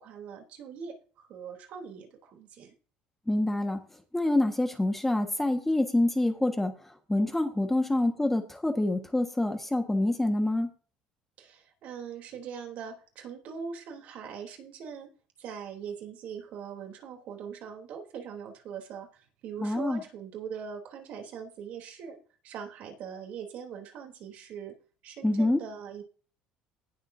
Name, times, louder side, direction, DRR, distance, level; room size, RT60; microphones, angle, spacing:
voice 1, 0.0-2.7 11.4-15.1 15.4-22.2 22.4-24.7 25.0-26.0, right 7 dB, 55° right, 3 dB, 3.2 m, -41 dB
voice 2, 3.3-3.8 4.1-6.7 7.1-10.7 19.6-20.0 25.2-25.6, left 1 dB, 5° left, 5 dB, 1.5 m, -26 dB
19.0 x 7.3 x 2.7 m, 0.37 s
cardioid pair, 135°, 3 cm